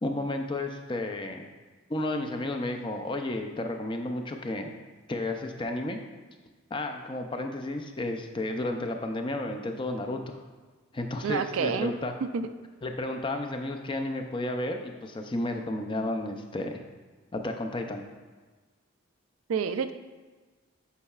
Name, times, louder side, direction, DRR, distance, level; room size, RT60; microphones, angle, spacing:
voice 1, 0.0-1.5 1.9-4.7 5.1-6.0 6.7-10.4 10.9-12.1 12.8-16.8 17.3-18.0, left 2 dB, 25° left, 4 dB, 0.4 m, -32 dB
voice 2, 11.2-11.9 12.3-12.5 19.5-19.9, right 6 dB, 90° right, 10 dB, 0.4 m, -28 dB
8.2 x 5.6 x 2.4 m, 1.3 s
head